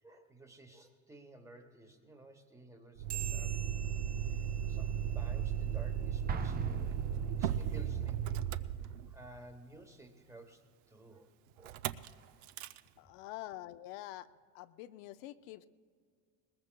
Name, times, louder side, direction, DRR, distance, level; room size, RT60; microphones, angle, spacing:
voice 1, 0.0-3.9 4.2-8.4 9.1-10.6 10.9-11.3 11.6-11.8, right 1 dB, 10° right, 5 dB, 1.0 m, -55 dB
Motor vehicle (road), 3.0-9.4 11.6-12.1 12.4-12.8, right 9 dB, 75° right, 0.6 m, -35 dB
sound 1, 3.1-5.9, right 10 dB, 50° right, 2.4 m, -47 dB
Explosion, 6.3-8.0, right 7 dB, 25° right, 0.5 m, -40 dB
voice 2, 13.0-14.3 14.5-15.7, left 15 dB, 75° left, 11 dB, 0.6 m, -46 dB
20.5 x 20.5 x 2.2 m, 2.1 s
cardioid pair, 135°, 39 cm